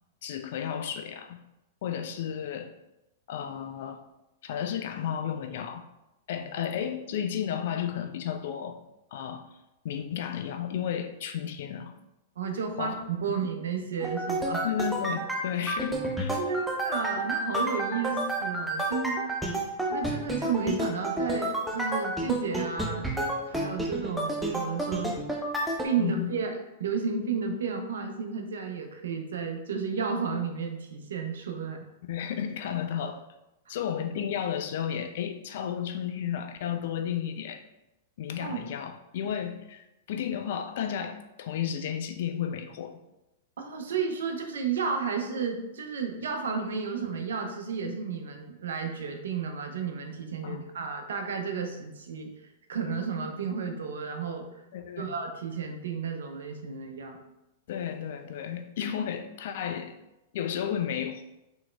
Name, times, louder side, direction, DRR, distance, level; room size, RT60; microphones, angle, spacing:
voice 1, 0.2-1.4 1.8-2.7 3.3-4.0 4.4-5.8 6.3-8.8 9.1-9.4 9.8-11.9 12.8-13.0 13.3-13.4 14.6-16.4 26.0-26.3 32.1-33.2 33.7-37.6 38.2-43.0 50.4-50.6 54.7-55.1 57.7-59.9 60.3-61.2, left 9 dB, 60° left, 7 dB, 0.3 m, -33 dB
voice 2, 12.4-14.7 16.4-19.2 19.9-23.1 23.4-25.2 25.8-31.9 33.7-33.8 38.4-38.6 43.6-52.3 52.7-54.5 55.0-57.2, right 5 dB, 70° right, 4 dB, 0.5 m, -32 dB
sound 1, 14.0-25.9, right 1 dB, 5° right, 0.5 m, -30 dB
3.6 x 3.0 x 2.2 m, 0.93 s
hypercardioid pair, 105°, 0 cm